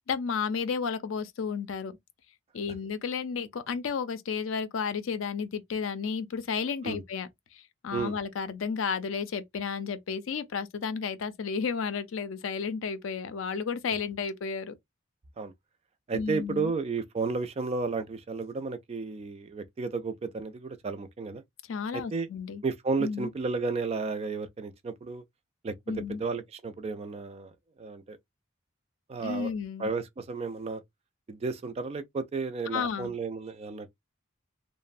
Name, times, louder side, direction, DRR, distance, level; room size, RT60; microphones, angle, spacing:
voice 1, 0.1-2.0 2.5-14.8 16.1-16.7 21.7-22.6 23.0-23.3 25.9-26.2 29.2-29.9 32.7-33.1, left 6 dB, 75° left, 0.5 m, -32 dB
voice 2, 16.1-21.4 21.9-22.3 22.6-25.2 25.6-25.7 26.1-27.5 27.8-28.2 29.1-29.5 29.8-30.8 31.3-33.9, right 4 dB, 30° right, 0.3 m, -33 dB
2.9 x 2.0 x 2.4 m
head